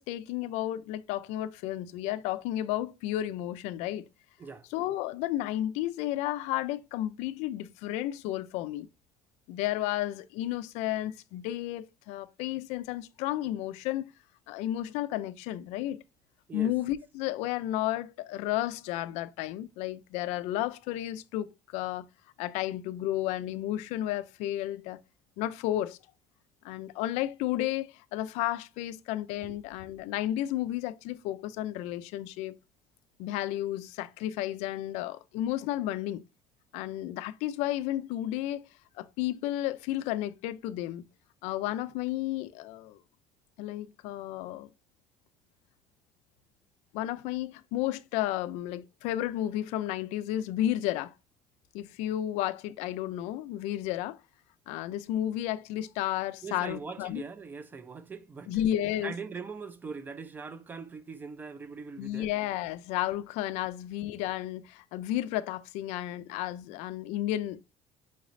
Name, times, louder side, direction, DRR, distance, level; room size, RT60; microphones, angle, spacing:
voice 1, 0.0-4.0 4.7-8.9 9.5-14.1 14.5-16.0 16.5-22.1 22.4-25.0 25.4-26.0 26.6-32.5 33.2-36.2 36.7-38.6 39.0-41.0 41.4-43.0 43.6-44.7 46.9-51.1 51.7-54.2 54.7-57.2 58.5-59.1 62.0-67.7, left 13 dB, 75° left, 0.4 m, -32 dB
voice 2, 56.4-58.5 59.0-62.3, right 5 dB, 15° right, 0.4 m, -41 dB
5.6 x 3.1 x 2.5 m
cardioid pair, 180°, 12 cm